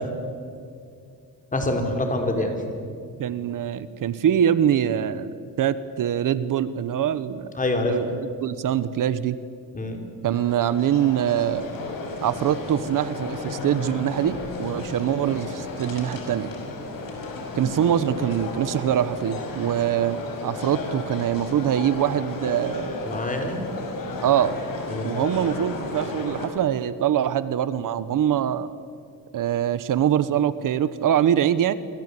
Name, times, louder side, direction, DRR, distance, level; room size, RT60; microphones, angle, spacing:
voice 1, 1.5-2.5 7.6-8.0 9.7-10.0 23.0-23.6 24.9-25.1, left 2 dB, 25° left, 3 dB, 4.5 m, -25 dB
voice 2, 3.2-5.3 5.6-7.5 7.9-9.4 10.2-11.7 12.2-16.5 17.5-22.9 24.2-24.6 25.0-28.7 29.3-31.7, right 10 dB, 65° right, 14 dB, 1.1 m, -23 dB
sound 1, 10.3-26.5, left 3 dB, 80° left, 5.8 m, -34 dB
28.0 x 25.0 x 8.4 m, 2.4 s
cardioid pair, 125°, 34 cm